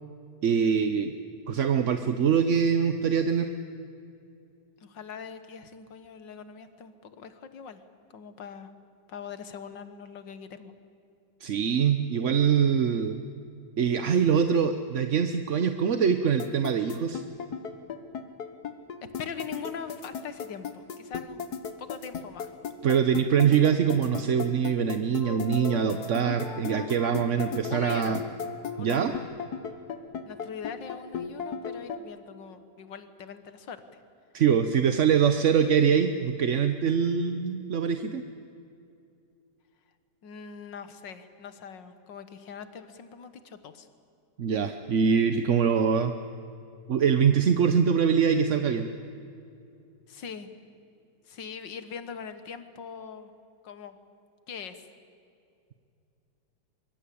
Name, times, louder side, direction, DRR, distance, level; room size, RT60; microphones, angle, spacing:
voice 1, 0.4-1.1 1.5-3.5 11.4-13.2 13.8-17.2 22.8-28.2 28.8-29.1 34.3-38.2 44.4-46.1 46.9-48.9, right 7 dB, 50° right, 8 dB, 1.0 m, -24 dB
voice 2, 4.8-7.8 8.1-8.7 9.1-10.7 19.0-21.4 21.8-22.5 27.7-28.2 28.7-29.3 30.3-34.0 40.2-43.9 50.1-50.5 51.2-53.3 53.6-54.0 54.5-54.9, left 6 dB, 80° left, 11 dB, 2.1 m, -42 dB
sound 1, 16.4-32.0, left 6 dB, 60° left, 1.8 m, -35 dB
23.5 x 23.5 x 8.6 m, 2.6 s
omnidirectional pair, 1.9 m